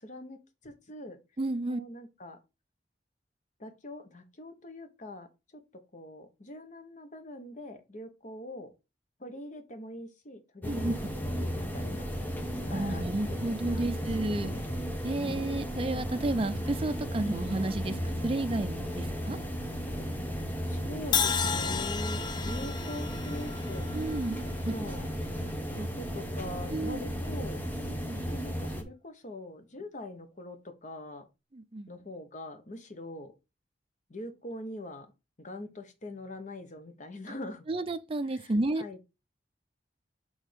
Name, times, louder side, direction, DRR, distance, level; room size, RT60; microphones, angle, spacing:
voice 1, 0.0-1.2 1.7-2.4 3.6-8.7 9.2-12.4 12.7-14.6 15.1-15.5 17.2-17.5 20.6-23.9 24.7-25.1 25.7-27.6 28.3-31.3 31.9-33.3 34.1-35.1 35.4-37.7 38.2-39.2, left 1 dB, 45° left, 1.1 m, -43 dB
voice 2, 1.4-1.8 10.7-10.9 12.6-14.5 15.0-19.4 23.9-24.4 24.6-24.7 26.7-27.0 28.0-28.2 31.5-31.9 37.7-38.8, right 2 dB, 30° right, 0.5 m, -31 dB
sound 1, 10.6-28.8, equal, 10° left, 1.0 m, -34 dB
Crash cymbal, 21.1-25.2, left 7 dB, 25° left, 0.4 m, -33 dB
6.3 x 3.6 x 5.1 m
head